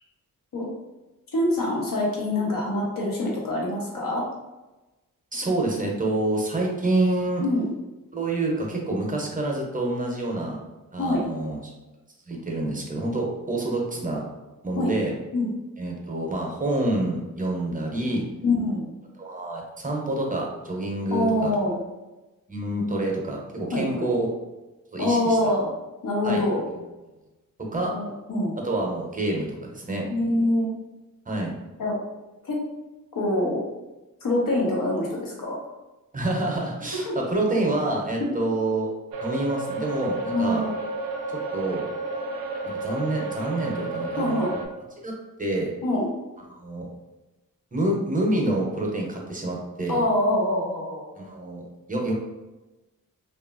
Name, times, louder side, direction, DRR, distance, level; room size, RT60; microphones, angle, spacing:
voice 1, 1.3-4.2 7.4-7.7 11.0-11.2 14.7-14.9 15.3-15.5 18.4-18.8 21.1-21.8 23.7-24.1 25.0-25.7 26.0-26.6 27.9-28.5 30.1-30.7 31.8-32.0 32.4-32.6 33.1-33.6 34.2-35.6 36.9-37.2 38.2-38.3 40.3-40.7 44.2-44.5 45.8-46.1 49.9-51.2, left 1 dB, 70° left, -2 dB, 0.9 m, -25 dB
voice 2, 5.3-7.4 8.1-10.6 10.9-11.7 12.3-14.2 14.6-15.1 15.8-18.2 19.2-21.5 22.5-24.3 24.9-25.5 26.2-26.4 27.7-27.9 28.6-30.1 31.3-31.5 36.1-38.9 39.2-40.7 41.5-41.8 42.6-44.4 45.0-45.1 45.4-45.7 46.5-46.9 47.7-50.0 51.2-52.1, right 2 dB, 25° right, -1 dB, 0.7 m, -27 dB
sound 1, 39.1-44.7, right 3 dB, 80° right, 0.5 m, -31 dB
2.8 x 2.4 x 2.5 m, 1.1 s
cardioid pair, 65°, 35 cm